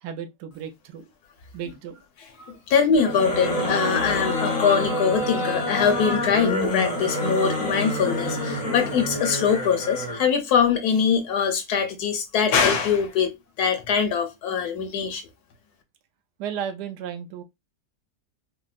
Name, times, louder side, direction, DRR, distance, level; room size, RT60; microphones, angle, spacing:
voice 1, 0.0-1.1 1.5-2.0 2.5-2.6 16.4-17.4, right 8 dB, 80° right, 1.2 m, -34 dB
voice 2, 2.4-15.2, left 6 dB, 70° left, 1.2 m, -23 dB
sound 1, 2.9-10.3, left 1 dB, 45° left, 0.5 m, -27 dB
4.3 x 2.0 x 2.4 m
omnidirectional pair, 1.8 m